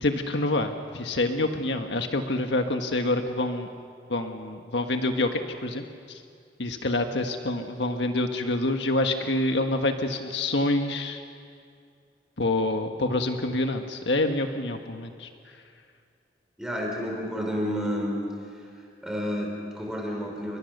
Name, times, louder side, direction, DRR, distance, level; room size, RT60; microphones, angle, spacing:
voice 1, 0.0-3.7 4.1-5.8 6.6-11.2 12.4-15.3, left 2 dB, 75° left, 5 dB, 1.5 m, -27 dB
voice 2, 16.6-18.2 19.0-20.6, equal, 5° right, -1 dB, 4.7 m, -30 dB
29.5 x 23.0 x 6.7 m, 2.3 s
head